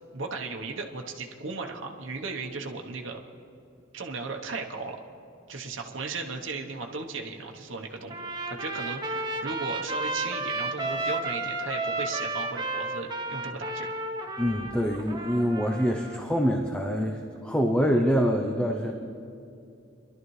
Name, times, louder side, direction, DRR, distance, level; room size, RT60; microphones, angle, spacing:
voice 1, 0.1-3.2 3.9-5.0 5.5-8.2 8.5-13.9, right 3 dB, 70° right, 1 dB, 1.0 m, -36 dB
Trumpet, 8.1-16.2, right 2 dB, 25° right, 1.0 m, -32 dB
voice 2, 14.4-18.9, equal, 5° left, 2 dB, 0.6 m, -25 dB
24.0 x 12.0 x 3.2 m, 2.6 s
head